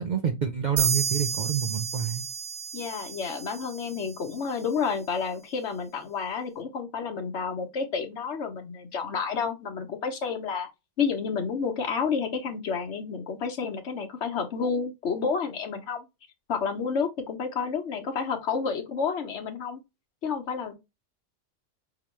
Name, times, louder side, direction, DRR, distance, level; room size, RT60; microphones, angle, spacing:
voice 1, 0.0-2.3, right 7 dB, 55° right, 0.5 m, -28 dB
sound 1, 0.8-4.4, right 6 dB, 75° right, 1.1 m, -31 dB
voice 2, 2.7-10.7 11.0-16.1 16.5-19.8 20.2-20.7, left 5 dB, 65° left, 1.1 m, -30 dB
5.5 x 2.9 x 3.1 m
omnidirectional pair, 1.3 m